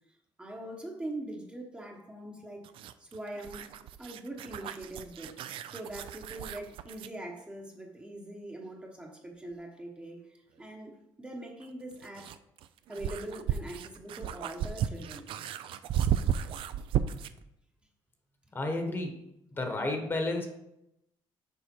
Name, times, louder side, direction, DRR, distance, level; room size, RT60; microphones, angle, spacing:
voice 1, 0.4-2.7 3.0-3.7 4.0-12.4 12.9-15.3, right 1 dB, 10° right, 0 dB, 0.9 m, -42 dB
sound 1, 2.6-7.2 9.5-9.6 11.6-17.4, right 10 dB, 70° right, 0.4 m, -34 dB
voice 2, 18.5-19.2 19.6-20.5, left 2 dB, 25° left, 4 dB, 1.1 m, -31 dB
7.1 x 4.8 x 4.4 m, 0.83 s
cardioid pair, 135°, 9 cm